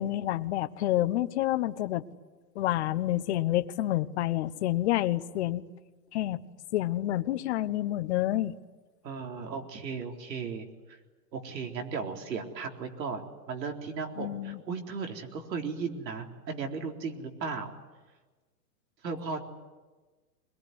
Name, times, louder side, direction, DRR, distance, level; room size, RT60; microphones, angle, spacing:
voice 1, 0.0-2.0 2.5-5.6 6.1-6.4 6.7-8.5 14.2-14.6, left 14 dB, 40° left, 12 dB, 1.0 m, -28 dB
voice 2, 9.0-11.0 11.3-17.7 19.0-19.4, right 5 dB, 85° right, 2 dB, 4.1 m, -36 dB
23.0 x 21.5 x 9.6 m, 1.3 s
hypercardioid pair, 155°, 49 cm